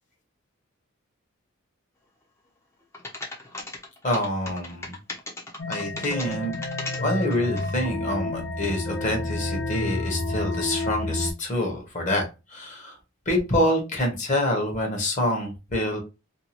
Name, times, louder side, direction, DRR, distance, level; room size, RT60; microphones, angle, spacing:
sound 1, 2.9-7.7, left 2 dB, 15° left, 0.5 m, -36 dB
voice 1, 4.0-4.9 5.7-6.5 7.0-13.0 13.3-16.0, left 1 dB, 35° left, 2 dB, 0.9 m, -26 dB
sound 2, 5.6-11.3, left 2 dB, 75° left, 0.6 m, -30 dB
2.6 x 2.3 x 2.9 m, 0.27 s
head